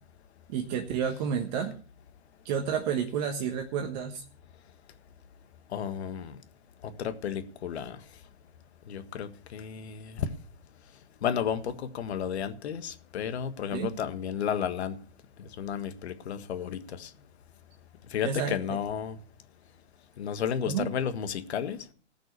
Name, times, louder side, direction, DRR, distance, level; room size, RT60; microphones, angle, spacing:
voice 1, 0.5-1.7 2.4-4.2 13.7-13.9 18.2-18.6 20.7-20.8, right 7 dB, 35° right, 1.4 m, -30 dB
voice 2, 5.7-6.4 6.8-8.0 8.9-10.3 11.2-15.0 15.6-17.1 18.1-19.2 20.2-21.8, left 8 dB, 60° left, 1.7 m, -32 dB
18.0 x 6.1 x 6.7 m
hypercardioid pair, 135°, 36 cm